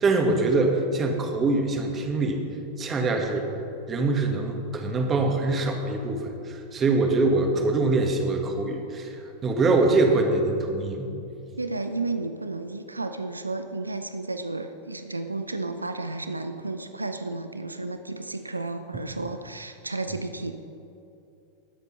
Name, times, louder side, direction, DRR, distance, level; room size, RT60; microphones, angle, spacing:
voice 1, 0.0-2.4 2.8-3.5 3.9-11.1, right 3 dB, 25° right, 3 dB, 1.9 m, -24 dB
voice 2, 11.6-20.5, right 3 dB, 80° right, 9 dB, 0.6 m, -32 dB
20.0 x 8.1 x 5.5 m, 2.7 s
figure-of-eight pair, 90°, 0 cm